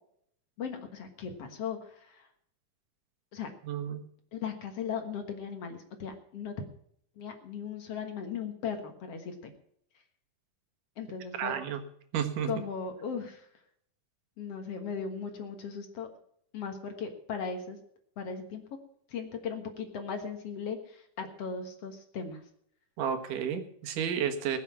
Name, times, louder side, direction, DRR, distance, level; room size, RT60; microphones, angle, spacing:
voice 1, 0.6-2.3 3.3-3.5 4.3-6.7 7.2-9.5 11.0-11.6 12.5-13.5 14.4-16.1 16.5-17.8 18.2-18.6 19.1-22.4, left 6 dB, 55° left, 5 dB, 2.2 m, -37 dB
voice 2, 3.6-4.0 11.4-11.8 12.1-12.5 23.0-24.6, right 8 dB, 80° right, 7 dB, 3.0 m, -31 dB
20.5 x 7.6 x 5.9 m, 0.68 s
omnidirectional pair, 3.6 m